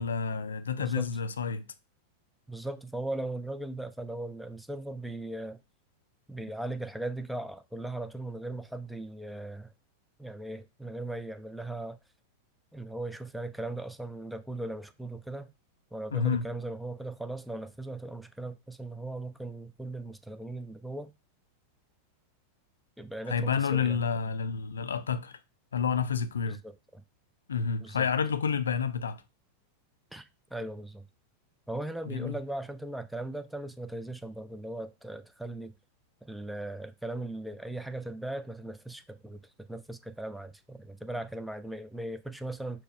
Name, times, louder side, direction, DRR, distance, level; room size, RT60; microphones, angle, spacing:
voice 1, 0.0-1.7 16.1-16.4 23.3-25.3 25.7-26.6 27.5-29.2 32.1-32.4, left 6 dB, 70° left, 0.3 m, -29 dB
voice 2, 0.8-1.1 2.5-5.6 6.3-9.7 10.2-12.0 12.7-15.5 15.9-21.1 23.0-24.0 26.5-27.0 27.8-28.1 30.1-31.1 31.7-35.8 36.2-42.8, right 2 dB, ahead, 0.4 m, -38 dB
4.5 x 2.0 x 4.6 m
figure-of-eight pair, 90°, 0 cm